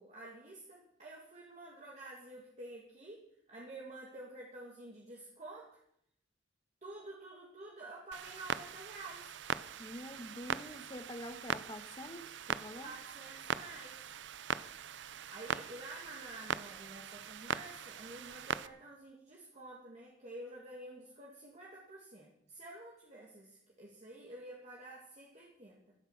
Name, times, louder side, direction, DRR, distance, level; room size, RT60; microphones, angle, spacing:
voice 1, 0.0-5.8 6.8-9.3 12.8-14.0 15.3-25.9, right 2 dB, 40° right, -3 dB, 2.3 m, -50 dB
Clock, 8.1-18.7, right 7 dB, 65° right, 0.6 m, -41 dB
voice 2, 9.8-12.9, left 1 dB, 25° left, 8 dB, 1.3 m, -46 dB
14.5 x 12.0 x 6.0 m, 0.73 s
head